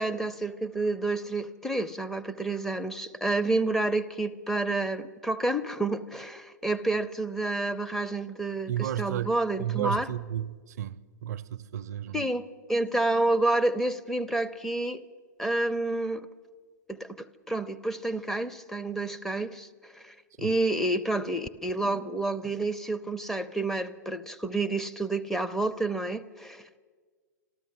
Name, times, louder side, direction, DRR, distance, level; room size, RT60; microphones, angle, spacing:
voice 1, 0.0-10.1 12.1-15.0 15.4-16.3 16.9-26.8, right 2 dB, 5° left, 0.6 m, -29 dB
voice 2, 8.7-9.3 9.6-12.2 20.4-20.5, right 11 dB, 65° right, 0.6 m, -33 dB
13.0 x 13.0 x 7.7 m
hypercardioid pair, 110°, 10 cm